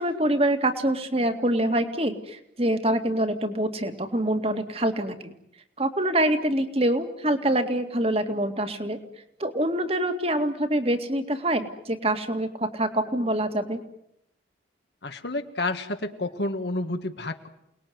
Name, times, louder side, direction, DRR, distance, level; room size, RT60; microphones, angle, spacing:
voice 1, 0.0-5.3 5.8-9.0 9.4-13.8, right 1 dB, 30° right, 8 dB, 2.3 m, -25 dB
voice 2, 15.0-17.5, left 2 dB, 60° left, 6 dB, 1.7 m, -30 dB
29.0 x 20.0 x 9.5 m, 0.79 s
head